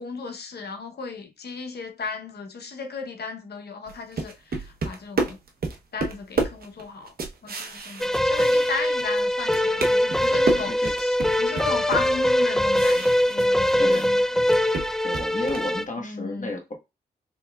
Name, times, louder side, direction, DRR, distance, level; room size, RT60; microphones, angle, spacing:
voice 1, 0.0-5.4 5.9-7.1 7.4-14.4 16.0-16.5, left 4 dB, 70° left, 0.9 m, -35 dB
sound 1, 3.9-9.2 9.5-14.1 14.4-15.7, right 3 dB, 60° right, 0.9 m, -31 dB
sound 2, 8.0-15.8, left 1 dB, ahead, 0.3 m, -22 dB
voice 2, 10.6-10.9 13.8-14.1 15.0-16.8, left 2 dB, 50° left, 1.4 m, -32 dB
4.1 x 3.2 x 2.3 m
cardioid pair, 50°, 17 cm